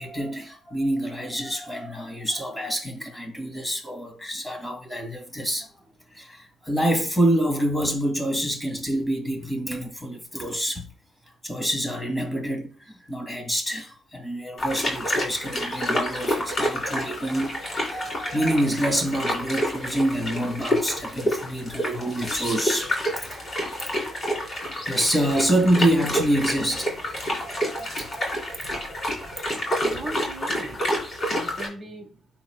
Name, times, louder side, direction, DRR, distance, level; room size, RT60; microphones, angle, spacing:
voice 1, 0.0-5.7 6.1-10.9 11.4-12.7 13.1-23.4 24.9-26.9 27.4-29.3, right 1 dB, 15° left, 2.3 m, -27 dB
sound 1, 14.6-31.7, equal, 35° left, 3.6 m, -28 dB
voice 2, 29.5-32.3, right 2 dB, 30° right, 1.4 m, -40 dB
11.5 x 4.3 x 2.2 m
cardioid pair, 90°, 0 cm